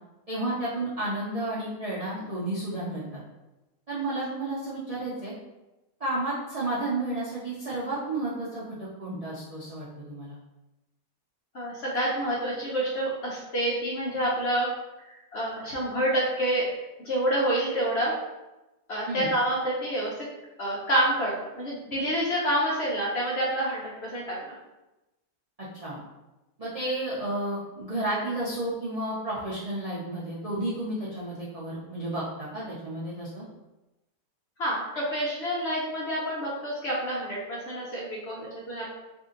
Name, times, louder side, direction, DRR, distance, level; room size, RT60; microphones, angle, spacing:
voice 1, 0.3-3.2 3.9-5.3 6.0-10.4 19.1-19.3 25.8-26.0 26.6-33.4, right 2 dB, 55° right, -8 dB, 0.4 m, -32 dB
voice 2, 11.5-14.7 15.0-16.7 17.0-18.1 18.9-20.3 20.6-24.5 34.6-38.9, right 1 dB, 55° left, -5 dB, 0.8 m, -28 dB
2.7 x 2.6 x 3.7 m, 1.0 s
omnidirectional pair, 1.7 m